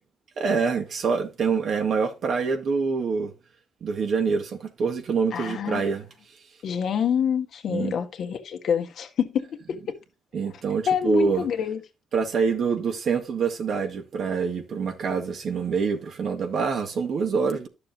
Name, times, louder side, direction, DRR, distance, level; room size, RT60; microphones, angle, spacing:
voice 1, 0.4-3.3 3.8-6.1 7.7-7.9 10.3-11.5 12.1-17.7, right 5 dB, 60° right, 1.8 m, -25 dB
voice 2, 5.3-5.8 6.6-9.6 10.9-11.8, left 8 dB, 65° left, 1.6 m, -26 dB
11.5 x 6.8 x 2.9 m
cardioid pair, 90°, 0 cm